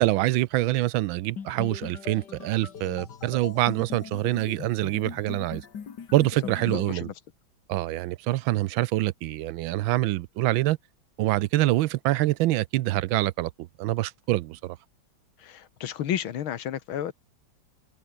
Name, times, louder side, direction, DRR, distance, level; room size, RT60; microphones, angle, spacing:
voice 1, 0.0-5.6 6.1-7.1 7.7-10.8 11.2-14.8, right 16 dB, 80° right, 1.3 m, -25 dB
sound 1, 1.4-6.9, left 7 dB, 55° left, 2.3 m, -40 dB
voice 2, 6.7-7.1 15.4-17.1, left 10 dB, 80° left, 2.1 m, -32 dB
open air
omnidirectional pair, 2.2 m